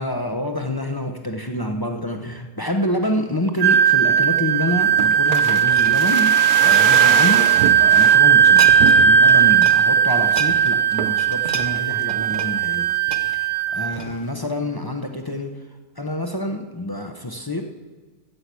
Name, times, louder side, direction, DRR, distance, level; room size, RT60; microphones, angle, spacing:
voice 1, 0.0-15.6 16.0-17.6, left 1 dB, 25° left, 4 dB, 0.5 m, -27 dB
Wind instrument woodwind instrument, 3.6-14.0, right 8 dB, 50° right, 0.6 m, -16 dB
sound 1, 4.7-7.9 8.3-9.0 9.3-9.8 10.1-14.4 14.9-15.1, right 4 dB, 30° right, 1.0 m, -34 dB
sound 2, 5.0-8.2 8.8-9.4 9.8-9.9 10.2-10.5 11.0-11.3 11.8-12.5 12.7-12.8, right 8 dB, 80° right, 1.3 m, -27 dB
14.5 x 5.8 x 8.2 m, 1.4 s
omnidirectional pair, 1.7 m